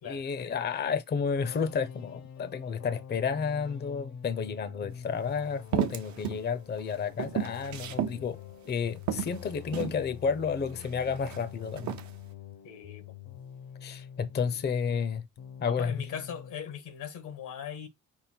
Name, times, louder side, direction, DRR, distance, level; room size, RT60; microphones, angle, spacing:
voice 1, 0.0-8.4 8.7-11.9 13.8-15.2 15.6-16.0, left 6 dB, 35° left, 0.6 m, -31 dB
sound 1, 1.4-15.1 15.4-16.6, left 8 dB, 70° left, 0.9 m, -46 dB
sound 2, 4.9-5.0 5.7-6.4 6.8-8.2 8.7-8.8 9.1-10.0 10.7-11.4 11.8-12.1, right 10 dB, 70° right, 0.7 m, -32 dB
voice 2, 12.6-13.1 15.6-17.9, left 8 dB, 85° left, 1.3 m, -39 dB
5.5 x 2.1 x 4.3 m
cardioid pair, 90°, 30 cm